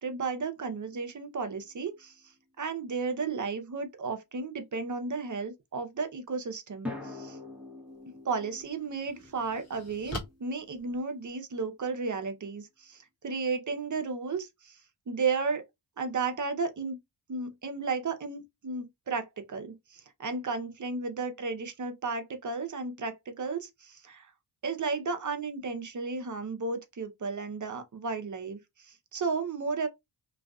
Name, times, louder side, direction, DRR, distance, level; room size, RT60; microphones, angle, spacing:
voice 1, 0.0-2.2 2.6-7.4 8.2-14.8 15.1-15.6 16.0-17.0 17.3-24.3 24.6-29.9, right 4 dB, 40° right, 0.7 m, -33 dB
sound 1, 0.9-2.0 6.9-11.2, left 2 dB, 5° right, 0.9 m, -45 dB
sound 2, 7.9-8.0 8.6-11.6, left 1 dB, 30° left, 1.0 m, -43 dB
2.4 x 2.3 x 2.3 m
cardioid pair, 50°, 48 cm